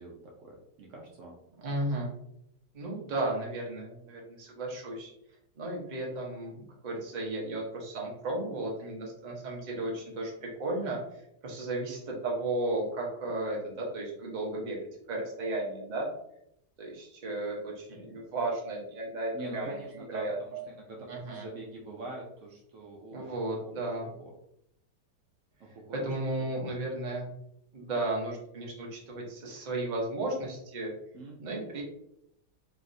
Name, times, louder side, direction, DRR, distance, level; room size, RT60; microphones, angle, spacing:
voice 1, 0.0-1.4 19.3-24.3 25.6-26.1 26.6-26.7 31.1-31.5, right 2 dB, 90° right, -1 dB, 0.6 m, -44 dB
voice 2, 1.6-2.1 2.7-5.1 5.6-14.8 15.1-16.1 16.8-19.7 20.1-20.6 21.1-21.4 23.1-24.1 25.9-27.3 27.7-30.9 31.4-31.8, right 2 dB, 45° right, -2 dB, 0.5 m, -34 dB
3.1 x 2.6 x 2.5 m, 0.76 s
omnidirectional pair, 1.9 m